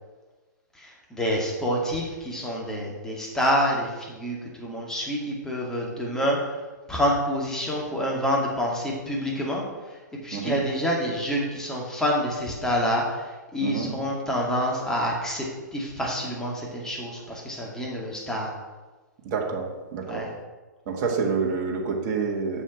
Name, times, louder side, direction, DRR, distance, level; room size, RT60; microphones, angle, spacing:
voice 1, 0.7-6.6 6.9-10.0 10.2-18.5 20.0-20.3, equal, 5° left, -3 dB, 2.3 m, -27 dB
voice 2, 19.2-20.3 20.9-22.6, right 5 dB, 40° right, 0 dB, 1.8 m, -28 dB
7.6 x 6.6 x 6.1 m, 1.3 s
figure-of-eight pair, 120°, 10 cm